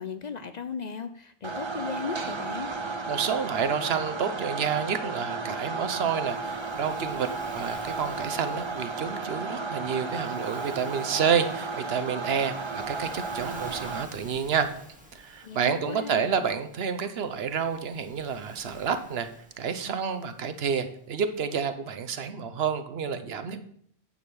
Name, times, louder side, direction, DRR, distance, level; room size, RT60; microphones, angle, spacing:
voice 1, 0.0-2.7 15.4-16.4, left 6 dB, 50° left, 10 dB, 0.6 m, -36 dB
sound 1, 1.4-14.0, right 3 dB, 30° right, 0.7 m, -34 dB
voice 2, 3.1-7.3 7.5-14.7 15.1-19.3 19.6-23.6, right 7 dB, 75° right, 9 dB, 1.0 m, -29 dB
Waves surf, 5.7-21.2, equal, 10° right, 1.3 m, -52 dB
9.7 x 3.9 x 6.8 m, 0.65 s
omnidirectional pair, 1.1 m